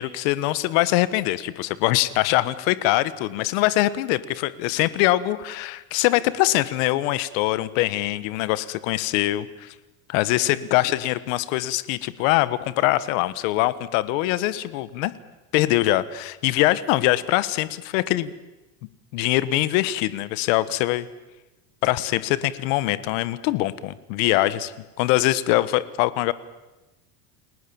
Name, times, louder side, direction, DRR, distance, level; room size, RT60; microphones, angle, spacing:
voice 1, 0.0-9.7 10.1-15.1 15.5-18.3 19.1-21.1 21.8-24.7 25.0-26.3, left 16 dB, 65° left, 16 dB, 1.6 m, -23 dB
30.0 x 19.5 x 7.2 m, 1.1 s
cardioid pair, 150°, 41 cm